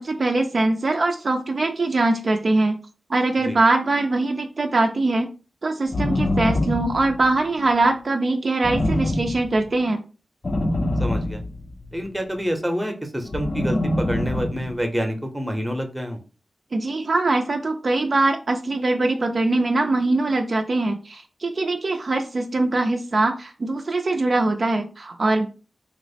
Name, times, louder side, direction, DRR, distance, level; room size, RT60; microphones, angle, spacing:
voice 1, 0.0-2.8 3.1-5.3 5.6-10.0 16.7-25.5, right 2 dB, 50° right, 4 dB, 0.3 m, -22 dB
sound 1, 5.9-7.4 8.6-9.6 10.4-12.0 13.3-14.8, left 1 dB, 35° left, 0.4 m, -24 dB
voice 2, 11.0-11.4 11.9-16.2, equal, 10° right, 4 dB, 0.6 m, -27 dB
2.9 x 2.0 x 4.0 m, 0.35 s
wide cardioid pair, 95°, 0 cm